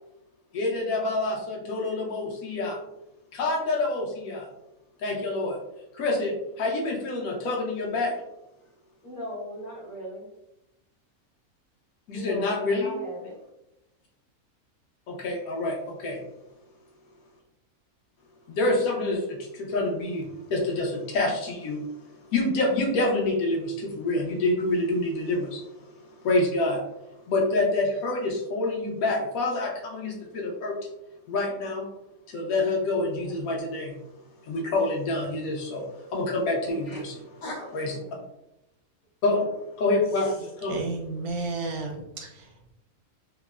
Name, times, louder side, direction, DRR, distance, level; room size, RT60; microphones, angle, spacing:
voice 1, 0.5-2.8 3.3-4.5 5.0-5.6 5.9-8.2 12.1-13.0 15.1-16.2 18.5-22.0 22.3-25.9 26.2-26.8 27.3-30.9 31.3-31.9 32.3-34.0 34.4-37.2 37.7-37.9 39.2-40.8, left 2 dB, 80° left, 0 dB, 1.1 m, -27 dB
voice 2, 9.0-10.3 12.1-13.4 33.2-33.4 36.6-37.0 37.4-38.3, equal, 60° left, -3 dB, 1.2 m, -39 dB
voice 3, 40.7-42.7, right 3 dB, 90° right, 0 dB, 1.2 m, -33 dB
3.6 x 2.1 x 2.3 m, 0.86 s
omnidirectional pair, 1.5 m